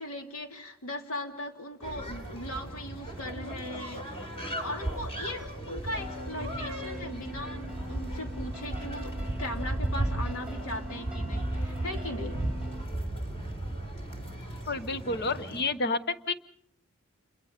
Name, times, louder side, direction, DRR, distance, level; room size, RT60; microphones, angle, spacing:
voice 1, 0.0-4.3 4.6-12.4, left 1 dB, 75° left, 4 dB, 3.0 m, -39 dB
sound 1, 1.8-15.6, right 1 dB, 25° left, 4.2 m, -35 dB
sound 2, 6.0-12.8, equal, 5° right, 1.0 m, -44 dB
voice 2, 14.7-16.3, left 3 dB, 50° left, 12 dB, 1.0 m, -30 dB
29.0 x 22.0 x 5.3 m, 0.66 s
head